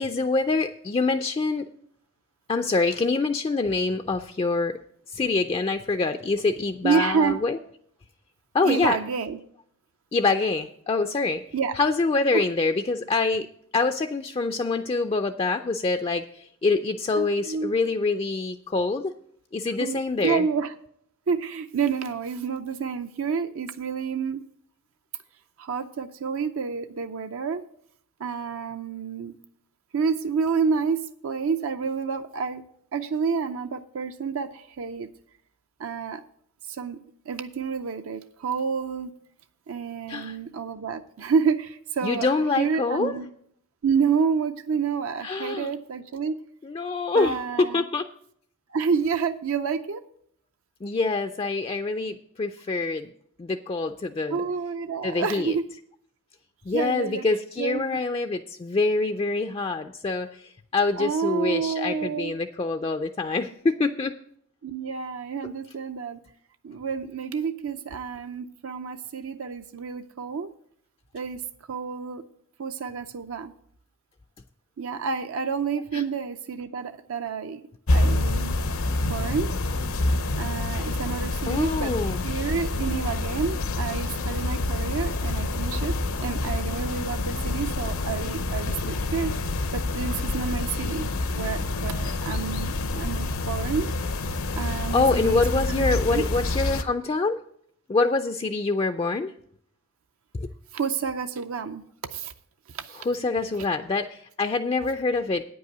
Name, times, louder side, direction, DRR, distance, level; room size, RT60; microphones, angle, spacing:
voice 1, 0.0-1.7 2.5-4.8 5.1-7.6 8.5-9.0 10.1-11.4 11.8-13.5 13.7-19.1 19.5-20.4 40.1-40.4 42.0-43.2 45.2-45.7 46.6-48.1 50.8-53.1 53.4-54.4 55.0-55.5 56.7-64.1 75.9-76.0 81.5-82.2 94.9-97.4 97.9-99.3 100.3-100.5 103.1-105.4, left 3 dB, 25° left, 8 dB, 0.3 m, -25 dB
voice 2, 6.8-7.4 8.6-9.4 11.5-11.8 12.3-12.4 17.2-17.7 19.8-20.7 21.3-24.4 25.6-27.6 28.2-29.4 29.9-32.6 32.9-35.1 35.8-36.2 36.6-37.0 37.3-39.1 39.7-42.3 42.6-43.3 43.8-46.4 47.1-47.8 48.7-50.1 54.3-55.7 56.7-57.2 57.6-58.0 61.0-62.4 64.6-66.2 66.6-70.5 71.1-72.2 72.6-73.5 74.8-77.6 77.9-78.5 79.1-79.5 80.4-89.3 89.7-91.1 91.3-93.9 94.6-96.2 100.7-101.8 102.1-102.3 102.7-103.1 103.6-103.7, right 6 dB, 70° right, 8 dB, 0.5 m, -29 dB
sound 1, 77.9-96.8, left 2 dB, 75° left, 0.7 m, -27 dB
9.3 x 5.5 x 7.9 m, 0.67 s
head